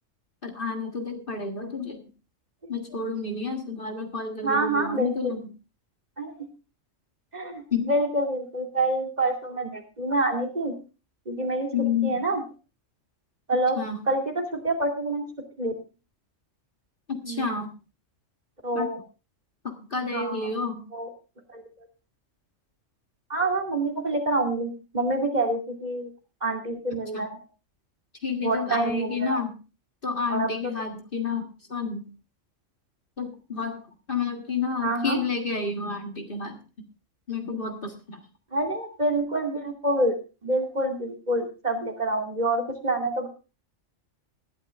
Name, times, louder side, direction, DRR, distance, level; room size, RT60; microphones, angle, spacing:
voice 1, 0.4-2.1 2.7-5.5 7.7-7.9 11.7-12.2 13.8-14.0 17.1-17.7 18.8-18.9 19.6-20.8 27.1-27.3 28.2-29.6 30.0-32.1 33.2-33.8 34.1-36.9 37.3-38.2, left 5 dB, 45° left, 4 dB, 1.9 m, -30 dB
voice 2, 4.4-5.3 6.2-6.3 7.3-10.7 11.3-11.7 12.0-12.4 13.5-13.8 14.1-15.3 15.6-15.7 17.2-17.5 18.6-19.0 20.1-20.5 20.9-21.1 21.5-21.6 23.3-26.1 26.4-27.3 28.4-29.4 30.3-30.5 34.8-35.2 38.5-40.1 40.4-43.3, right 2 dB, 35° right, 2 dB, 2.7 m, -27 dB
19.5 x 12.5 x 2.5 m, 0.31 s
omnidirectional pair, 1.3 m